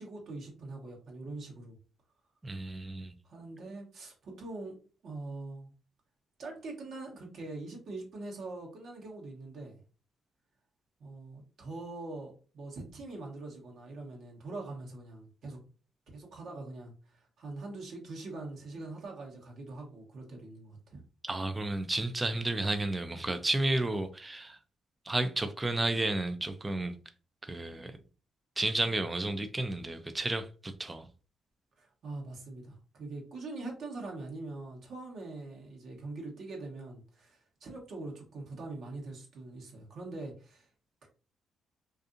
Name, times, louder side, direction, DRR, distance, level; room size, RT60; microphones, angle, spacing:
voice 1, 0.0-1.8 3.2-4.8 5.0-5.7 6.4-9.8 11.0-15.6 16.1-21.0 31.8-40.7 41.0-41.1, right 2 dB, 65° right, 0.9 m, -43 dB
voice 2, 2.4-3.2 21.3-24.6 25.1-27.0 27.4-28.0 28.6-31.1, right 2 dB, 20° right, 0.3 m, -32 dB
2.6 x 2.4 x 2.4 m
cardioid pair, 90°, 0 cm